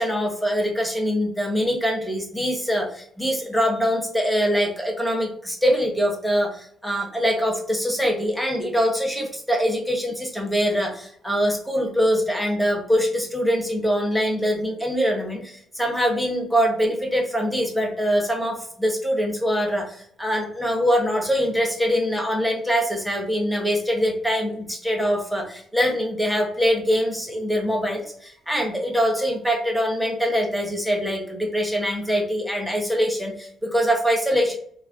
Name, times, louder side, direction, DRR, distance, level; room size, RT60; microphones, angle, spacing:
voice 1, 0.0-34.6, equal, ahead, 0 dB, 0.7 m, -23 dB
2.4 x 2.0 x 3.3 m, 0.62 s
cardioid pair, 90°, 0 cm